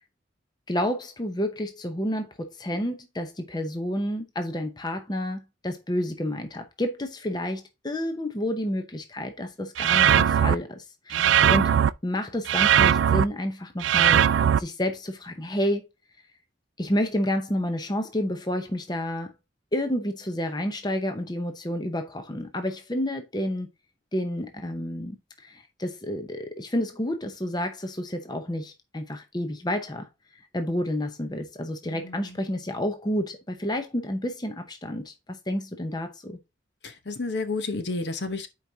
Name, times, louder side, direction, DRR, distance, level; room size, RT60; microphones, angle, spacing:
voice 1, 0.7-11.8 12.0-14.2 14.6-15.9 16.8-19.3 19.7-23.7 24.1-30.1 30.5-35.1 35.5-36.4, left 1 dB, 20° left, 0.8 m, -30 dB
sound 1, 9.8-10.6 11.1-11.9 12.5-13.2 13.8-14.6, right 9 dB, 70° right, 0.3 m, -19 dB
voice 2, 11.1-11.6 31.9-32.4 36.8-38.5, left 3 dB, 60° left, 0.9 m, -32 dB
10.5 x 4.8 x 2.7 m
head